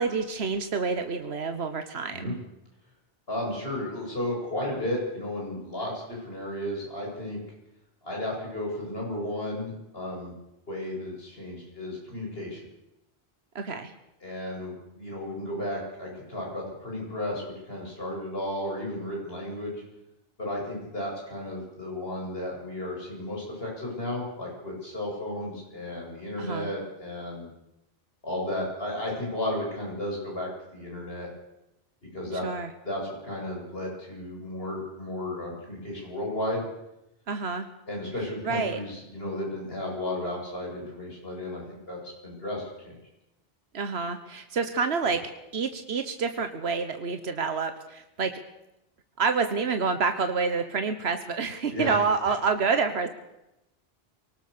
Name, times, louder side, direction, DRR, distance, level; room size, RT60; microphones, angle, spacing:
voice 1, 0.0-2.4 13.5-13.9 26.4-26.7 32.4-32.7 37.3-37.7 38.4-38.8 43.7-48.3 49.2-53.1, right 5 dB, 90° right, 8 dB, 1.5 m, -28 dB
voice 2, 3.3-7.4 8.0-10.3 10.7-12.6 14.2-19.8 20.4-27.5 28.2-31.3 32.1-32.5 32.8-36.6 37.9-42.9 51.7-52.0, left 1 dB, 70° left, -2 dB, 8.2 m, -33 dB
23.5 x 19.0 x 6.8 m, 0.89 s
omnidirectional pair, 1.0 m